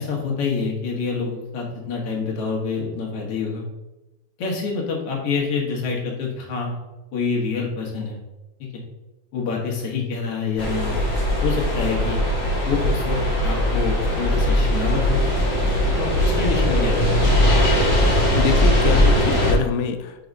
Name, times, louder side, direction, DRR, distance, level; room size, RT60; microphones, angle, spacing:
voice 1, 0.0-3.6 4.4-6.8 7.1-8.2 9.3-11.0 11.4-12.2 12.6-15.2 16.0-17.3, left 5 dB, 55° left, 0 dB, 2.0 m, -26 dB
sound 1, 10.6-19.5, left 1 dB, 40° left, 1.2 m, -19 dB
voice 2, 18.4-20.3, left 7 dB, 85° left, 6 dB, 2.1 m, -25 dB
5.0 x 3.9 x 5.2 m, 0.98 s
omnidirectional pair, 3.6 m